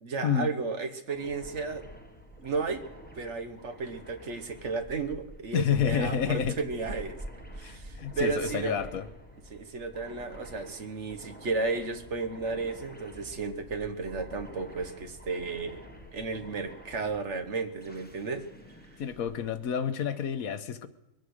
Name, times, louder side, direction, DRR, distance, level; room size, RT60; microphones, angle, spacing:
voice 1, 0.0-1.8 2.4-2.8 3.2-7.2 7.6-8.8 9.5-15.8 16.1-18.5, right 4 dB, 55° right, 8 dB, 1.3 m, -33 dB
sound 1, 1.1-19.9, equal, 10° left, 0.9 m, -51 dB
Wind, 1.1-19.7, right 1 dB, 25° right, 2.1 m, -50 dB
voice 2, 5.5-6.6 7.6-9.1 19.0-20.9, left 8 dB, 75° left, 11 dB, 1.3 m, -29 dB
22.0 x 9.0 x 6.5 m, 0.91 s
omnidirectional pair, 1.5 m